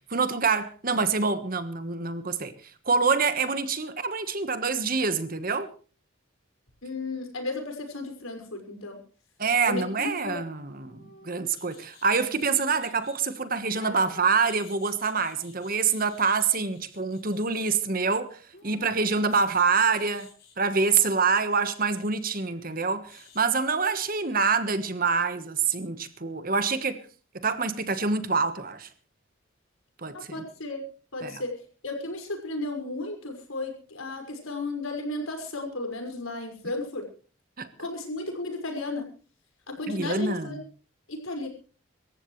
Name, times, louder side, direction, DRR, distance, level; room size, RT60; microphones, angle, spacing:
voice 1, 0.1-5.7 9.4-20.3 20.6-27.0 27.3-28.9 30.0-30.4 31.2-31.4 37.6-37.7 39.9-40.6, right 5 dB, 45° right, 1.4 m, -26 dB
voice 2, 6.8-9.0 9.6-10.4 30.3-30.8 31.1-31.6 31.8-37.0 37.8-39.1 39.7-40.6 41.1-41.5, left 2 dB, 90° left, 5.7 m, -34 dB
sound 1, 10.2-13.2 13.7-17.7 18.5-20.6 20.8-24.6 24.9-25.0, left 3 dB, 50° left, 7.6 m, -53 dB
25.0 x 14.5 x 3.2 m
head